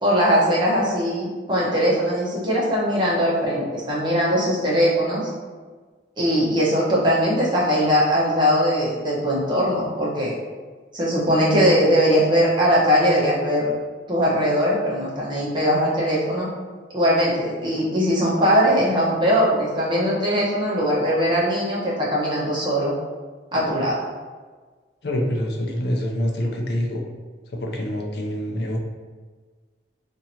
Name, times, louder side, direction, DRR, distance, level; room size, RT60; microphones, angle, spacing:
voice 1, 0.0-5.2 6.2-10.3 10.9-13.7 14.1-16.5 16.9-22.9 23.5-24.0, equal, 25° right, -6 dB, 0.9 m, -20 dB
voice 2, 25.0-27.0 27.5-28.8, equal, 60° left, 1 dB, 0.6 m, -25 dB
2.8 x 2.6 x 4.2 m, 1.4 s
head